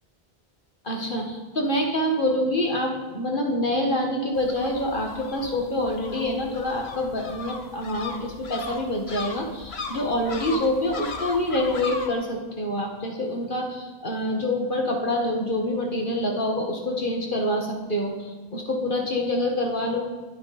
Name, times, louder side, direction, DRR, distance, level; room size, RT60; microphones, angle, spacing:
voice 1, 0.8-20.0, left 1 dB, 55° left, 0 dB, 2.0 m, -26 dB
sound 1, 4.3-12.1, left 4 dB, 90° left, 1.4 m, -37 dB
22.5 x 8.7 x 4.4 m, 1.2 s
omnidirectional pair, 1.0 m